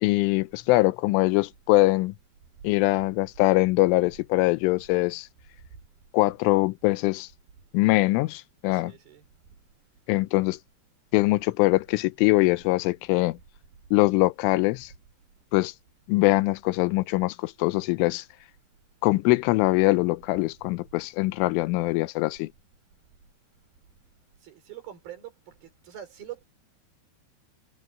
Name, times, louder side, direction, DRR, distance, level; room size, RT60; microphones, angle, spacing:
voice 1, 0.0-2.1 2.6-5.3 6.1-7.3 7.7-8.9 10.1-10.6 11.1-13.4 13.9-14.9 15.5-15.7 16.1-18.2 19.0-22.5, left 21 dB, 85° left, 3.2 m, -23 dB
voice 2, 8.7-9.3 24.4-26.4, right 11 dB, 50° right, 5.9 m, -44 dB
omnidirectional pair, 5.6 m